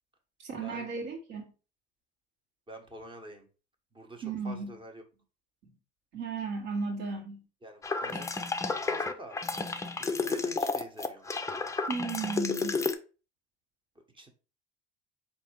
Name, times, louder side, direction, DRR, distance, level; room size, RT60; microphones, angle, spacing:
voice 1, 0.4-1.5 4.2-4.8 5.6-5.7 6.1-7.4 11.9-12.8, right 4 dB, 55° right, 1.6 m, -35 dB
voice 2, 2.7-3.5 3.9-5.0 7.6-8.3 8.6-9.4 10.0-11.3 13.9-14.3, right 1 dB, 15° right, 1.1 m, -47 dB
sound 1, 7.8-12.9, left 4 dB, 10° left, 0.5 m, -31 dB
4.1 x 2.8 x 4.5 m
supercardioid pair, 90°, 30 cm